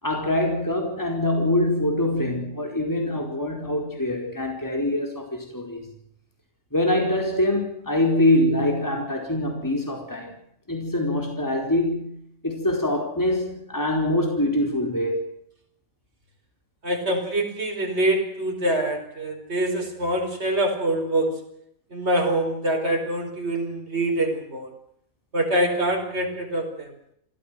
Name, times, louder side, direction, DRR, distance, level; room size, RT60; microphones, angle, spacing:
voice 1, 0.0-5.8 6.7-10.3 10.7-12.2 12.4-15.2, left 1 dB, 15° left, 4.7 m, -24 dB
voice 2, 16.8-21.4 21.9-24.7 25.3-26.9, right 1 dB, 50° right, 4.9 m, -25 dB
27.0 x 16.0 x 7.7 m
omnidirectional pair, 1.5 m